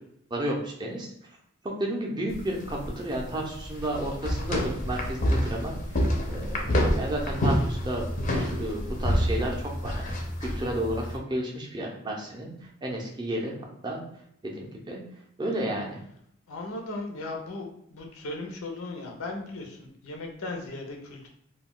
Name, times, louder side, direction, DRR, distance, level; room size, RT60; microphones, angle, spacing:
voice 1, 0.3-1.1 1.6-5.8 6.3-8.1 8.3-10.1 10.4-12.5 12.8-13.5 13.8-14.0 14.4-15.0 15.4-16.0, right 1 dB, 20° right, -1 dB, 0.5 m, -32 dB
sound 1, 2.3-11.2, equal, 40° left, 0.5 m, -28 dB
voice 2, 16.5-21.3, left 2 dB, 85° left, 1 dB, 0.6 m, -37 dB
2.3 x 2.2 x 3.6 m, 0.72 s
head